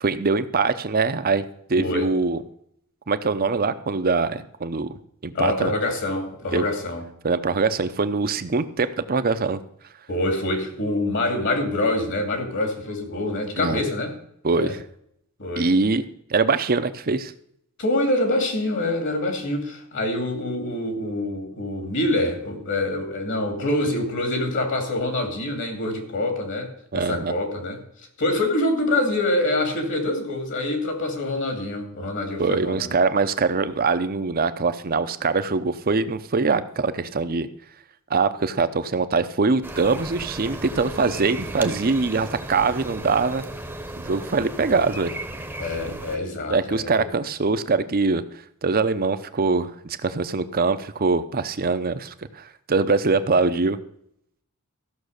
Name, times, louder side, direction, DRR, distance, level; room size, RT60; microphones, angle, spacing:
voice 1, 0.0-1.4 1.7-2.4 3.1-4.9 5.2-5.7 6.5-6.7 7.2-9.6 13.6-13.8 14.4-14.8 15.6-16.0 16.3-17.3 26.9-27.3 32.4-37.5 38.1-43.4 44.0-45.1 46.5-48.2 48.6-53.8, right 4 dB, 40° right, 12 dB, 0.7 m, -23 dB
voice 2, 1.7-2.1 5.3-7.0 10.1-14.1 14.5-14.7 15.4-15.7 17.8-27.8 28.2-32.9 45.6-47.1, left 1 dB, 55° left, 4 dB, 2.7 m, -25 dB
sound 1, 39.6-46.2, right 1 dB, 10° right, 1.0 m, -35 dB
14.5 x 6.2 x 6.5 m, 0.72 s
head